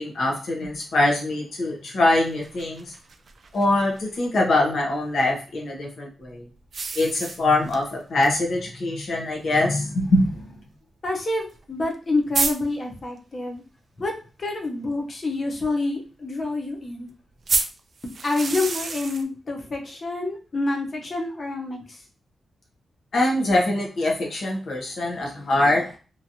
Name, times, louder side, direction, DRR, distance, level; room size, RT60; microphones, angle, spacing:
voice 1, 0.0-2.9 3.5-6.5 6.9-10.5 23.1-26.0, left 2 dB, 65° left, -1 dB, 0.8 m, -23 dB
sound 1, 2.1-4.2 6.7-7.9 8.2-8.3 8.7-8.8 9.7-9.8 11.6-11.7 11.9-12.0 12.3-12.5 17.5-19.2, right 4 dB, 50° right, 0.4 m, -28 dB
voice 2, 11.0-13.6 14.0-14.1 14.4-17.1 18.2-22.0, left 2 dB, 35° left, 2 dB, 0.7 m, -27 dB
2.9 x 2.6 x 2.6 m, 0.36 s
wide cardioid pair, 145°, 0 cm